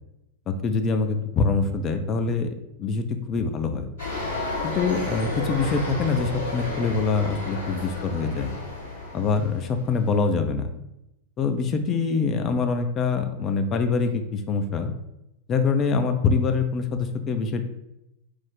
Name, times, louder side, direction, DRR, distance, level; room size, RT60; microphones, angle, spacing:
voice 1, 0.5-2.5 2.8-3.9 4.6-8.5 9.1-10.7 11.4-14.9 15.5-17.7, left 4 dB, 30° left, 7 dB, 0.4 m, -24 dB
sound 1, 4.0-10.3, left 2 dB, 65° left, 1.4 m, -32 dB
3.1 x 2.0 x 3.7 m, 0.88 s
figure-of-eight pair, 90°, 0 cm